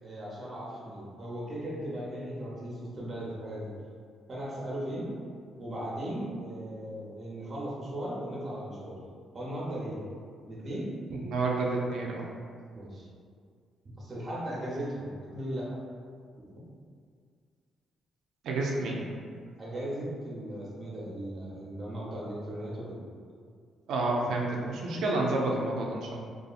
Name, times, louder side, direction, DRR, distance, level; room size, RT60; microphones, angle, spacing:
voice 1, 0.0-3.7 4.3-5.1 5.6-9.0 9.3-10.1 10.5-10.9 12.7-13.1 14.0-15.8 16.4-16.5 19.6-23.0, right 1 dB, 35° right, -5 dB, 0.7 m, -37 dB
voice 2, 11.2-12.3 18.4-19.0 23.9-26.1, right 2 dB, 75° right, -2 dB, 0.4 m, -29 dB
2.7 x 2.3 x 2.4 m, 2.1 s
cardioid pair, 90°, 0 cm